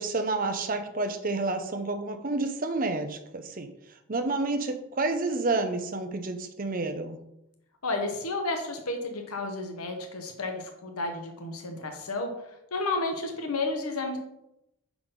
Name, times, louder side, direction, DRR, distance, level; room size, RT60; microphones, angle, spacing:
voice 1, 0.0-3.7 4.1-7.2, right 3 dB, 40° right, 7 dB, 0.7 m, -29 dB
voice 2, 7.8-12.3 12.7-14.2, left 2 dB, 90° left, 4 dB, 1.0 m, -32 dB
5.6 x 4.7 x 5.2 m, 0.84 s
head